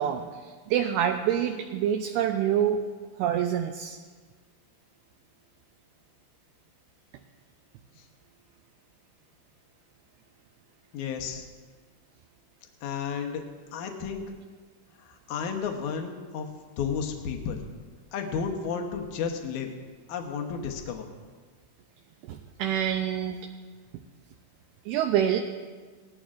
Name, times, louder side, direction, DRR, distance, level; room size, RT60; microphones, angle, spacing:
voice 1, 0.0-2.8 3.2-4.0 22.3-23.5 24.9-25.4, right 9 dB, 80° right, 5 dB, 2.4 m, -26 dB
voice 2, 10.9-11.5 12.8-14.3 15.0-16.5 16.8-17.6 18.1-19.8 20.1-21.1, left 6 dB, 75° left, 3 dB, 1.8 m, -32 dB
18.5 x 13.5 x 2.5 m, 1.5 s
omnidirectional pair, 4.8 m